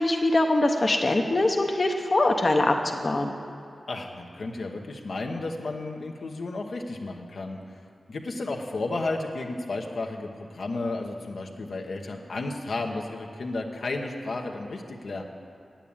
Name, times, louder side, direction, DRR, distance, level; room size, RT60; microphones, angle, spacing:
voice 1, 0.0-2.8 3.0-3.3, left 2 dB, 50° left, 3 dB, 0.9 m, -23 dB
voice 2, 3.9-7.6 8.1-15.2, left 2 dB, 75° left, 1 dB, 1.0 m, -33 dB
8.9 x 8.4 x 8.8 m, 2.6 s
cardioid pair, 40°, 0 cm